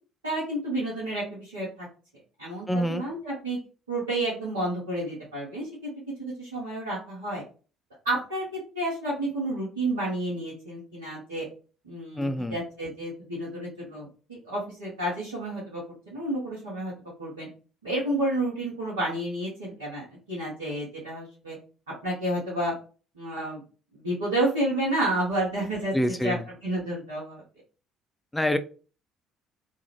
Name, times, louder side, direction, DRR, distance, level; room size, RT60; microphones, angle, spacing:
voice 1, 0.2-1.9 2.4-3.6 3.9-5.9 6.2-7.4 8.0-8.5 8.7-11.5 11.8-16.9 17.2-17.5 17.8-21.6 22.0-22.7 23.2-23.6 23.9-25.9 26.2-26.4 26.6-27.4, right 1 dB, 85° right, -7 dB, 0.8 m, -30 dB
voice 2, 2.7-3.0 12.2-12.6 25.9-26.4 28.3-28.6, equal, 10° left, 8 dB, 0.4 m, -26 dB
2.4 x 2.4 x 3.1 m, 0.37 s
hypercardioid pair, 50°, 0 cm